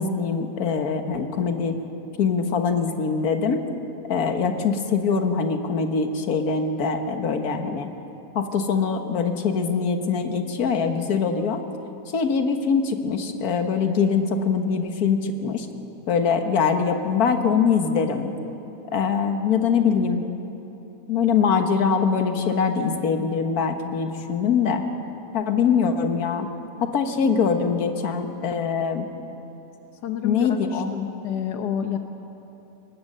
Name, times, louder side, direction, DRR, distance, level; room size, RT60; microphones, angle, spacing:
voice 1, 0.0-1.8 2.2-3.6 4.1-7.9 8.3-11.6 12.1-15.7 16.1-18.3 18.9-20.2 21.1-24.8 25.3-26.5 26.8-29.0 30.2-30.9, left 6 dB, 65° left, 6 dB, 1.8 m, -23 dB
voice 2, 30.0-32.0, left 9 dB, 85° left, 6 dB, 1.5 m, -29 dB
23.5 x 19.5 x 6.7 m, 3.0 s
omnidirectional pair, 1.7 m